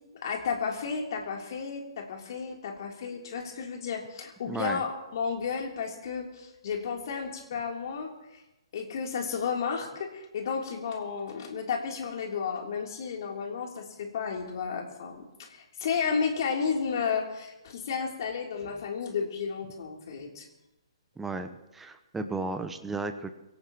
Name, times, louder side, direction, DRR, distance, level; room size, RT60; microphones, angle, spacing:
voice 1, 0.1-8.4 8.7-20.5, left 6 dB, 50° left, 1 dB, 3.3 m, -32 dB
voice 2, 4.4-4.8 21.2-23.3, right 3 dB, 5° right, 8 dB, 1.0 m, -34 dB
25.0 x 17.0 x 3.1 m, 0.97 s
figure-of-eight pair, 130°, 3 cm